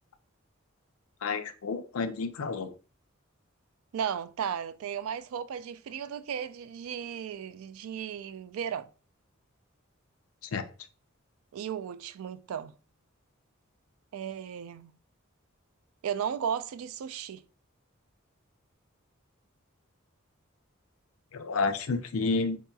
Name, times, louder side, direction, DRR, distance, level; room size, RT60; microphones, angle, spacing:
voice 1, 1.2-2.7 10.5-10.6 21.3-22.6, left 4 dB, 85° left, 0.5 m, -30 dB
voice 2, 3.9-8.9 11.5-12.7 14.1-14.9 16.0-17.4, right 8 dB, 85° right, 0.3 m, -35 dB
3.8 x 2.8 x 2.3 m
head